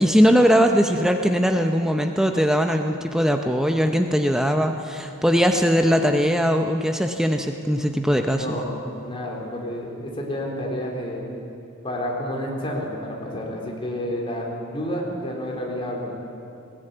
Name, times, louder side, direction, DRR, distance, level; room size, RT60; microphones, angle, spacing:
voice 1, 0.0-8.6, equal, 5° right, 4 dB, 0.7 m, -20 dB
voice 2, 8.3-8.7 9.0-11.2 11.8-16.1, equal, 25° left, -2 dB, 3.9 m, -30 dB
19.5 x 17.5 x 9.3 m, 2.6 s
head